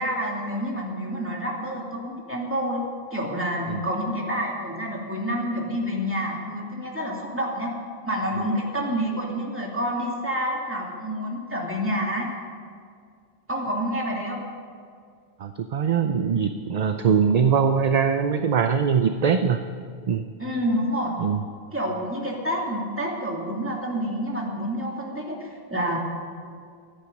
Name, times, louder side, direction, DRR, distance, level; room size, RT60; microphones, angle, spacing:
voice 1, 0.0-2.8 3.1-7.7 8.0-12.3 13.5-14.4 20.4-21.2 21.7-26.0, equal, 10° right, -2 dB, 2.4 m, -28 dB
voice 2, 15.4-19.6 20.1-20.2 21.2-21.4, right 6 dB, 50° right, 8 dB, 0.6 m, -22 dB
24.0 x 8.8 x 5.3 m, 2.2 s
omnidirectional pair, 1.0 m